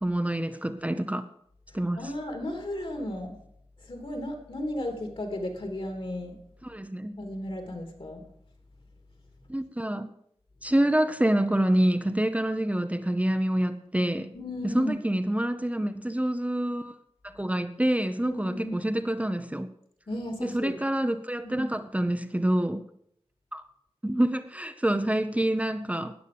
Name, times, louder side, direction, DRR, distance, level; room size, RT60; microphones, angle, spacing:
voice 1, 0.0-1.2 1.7-2.1 6.6-7.2 9.5-10.1 10.6-14.3 14.6-17.0 17.2-19.7 20.4-22.8 23.5-23.6 24.0-26.1, right 1 dB, 10° right, 7 dB, 0.8 m, -27 dB
voice 2, 2.0-3.4 3.9-6.3 7.2-8.2 14.3-15.0 18.2-18.8 20.1-20.7 21.4-21.7, left 1 dB, 55° left, 4 dB, 3.2 m, -34 dB
13.5 x 9.1 x 6.9 m, 0.69 s
wide cardioid pair, 70°, 11 cm